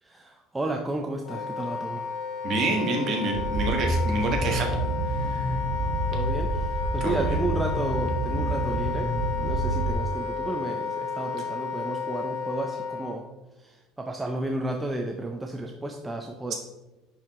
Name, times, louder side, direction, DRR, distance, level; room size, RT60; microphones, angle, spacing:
voice 1, 0.0-2.1 6.1-9.1 9.4-13.3 13.6-16.5, right 2 dB, 5° right, 2 dB, 0.5 m, -32 dB
Wind instrument woodwind instrument, 1.2-13.2, left 5 dB, 55° left, 1.0 m, -32 dB
voice 2, 2.4-4.7 5.3-5.5 7.0-7.4, right 2 dB, 35° right, 1 dB, 1.4 m, -27 dB
sound 1, 3.3-9.9, right 2 dB, 65° right, 1.4 m, -28 dB
10.0 x 4.7 x 3.6 m, 1.0 s
cardioid pair, 175°, 0 cm